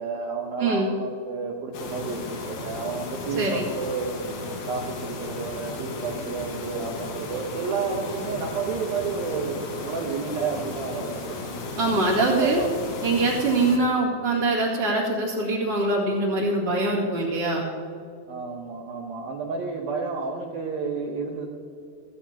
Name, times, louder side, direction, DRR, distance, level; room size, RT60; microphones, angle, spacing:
voice 1, 0.0-4.2 4.7-11.5 12.2-12.7 13.6-13.9 18.3-21.5, right 4 dB, 70° right, 0 dB, 2.3 m, -31 dB
sound 1, 1.7-13.8, left 2 dB, 60° left, 3.3 m, -35 dB
voice 2, 3.4-3.7 11.8-12.6 13.0-17.7, right 2 dB, 45° right, -6 dB, 2.3 m, -23 dB
16.5 x 15.0 x 2.9 m, 2.5 s
omnidirectional pair, 5.3 m